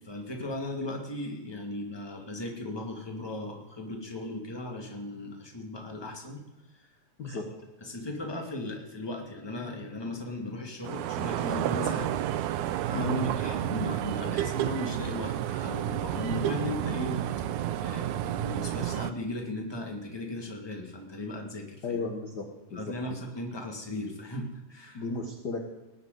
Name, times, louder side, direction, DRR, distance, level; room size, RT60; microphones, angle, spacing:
voice 1, 0.0-6.4 6.7-7.0 7.2-7.4 7.8-13.1 13.4-17.2 17.8-22.0 22.7-25.0, left 1 dB, 10° left, 2 dB, 1.6 m, -37 dB
sound 1, 10.8-19.1, right 12 dB, 80° right, 1.8 m, -31 dB
voice 2, 12.9-13.4 21.8-23.2 24.9-25.6, left 2 dB, 60° left, 2 dB, 1.0 m, -33 dB
19.0 x 6.7 x 9.2 m, 1.0 s
omnidirectional pair, 4.1 m